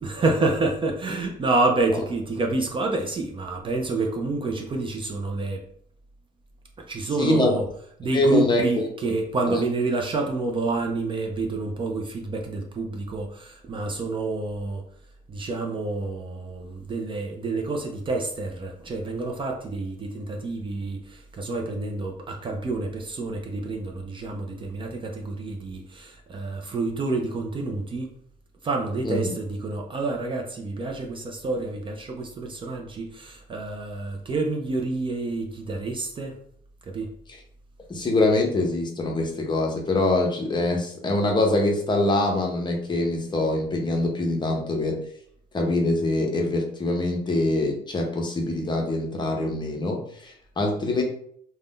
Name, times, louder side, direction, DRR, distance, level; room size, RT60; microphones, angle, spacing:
voice 1, 0.0-5.6 6.8-7.7 8.0-14.8 15.3-28.1 28.6-36.3 36.9-37.1, right 3 dB, 30° right, 2 dB, 0.4 m, -28 dB
voice 2, 7.2-7.5 8.1-8.8 9.5-9.6 29.0-29.3 37.9-45.0 45.5-51.0, left 2 dB, 25° left, 1 dB, 0.7 m, -24 dB
2.5 x 2.2 x 3.5 m, 0.64 s
cardioid pair, 110°, 17 cm